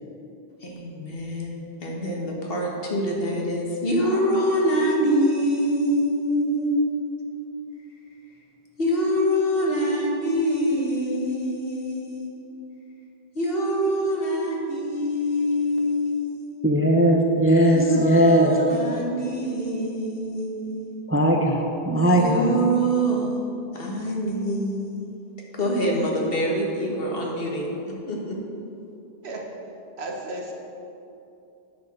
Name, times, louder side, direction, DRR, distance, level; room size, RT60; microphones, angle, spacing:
voice 1, 0.6-6.9 8.8-12.3 13.3-16.6 17.7-20.9 22.1-23.4 23.7-24.9 25.5-28.4, equal, 65° left, -2 dB, 1.5 m, -25 dB
voice 2, 16.6-18.6 21.1-22.5, right 1 dB, 15° right, 1 dB, 0.5 m, -19 dB
voice 3, 30.0-30.5, right 1 dB, 80° right, 0 dB, 1.4 m, -33 dB
9.0 x 4.9 x 6.0 m, 2.8 s
omnidirectional pair, 1.1 m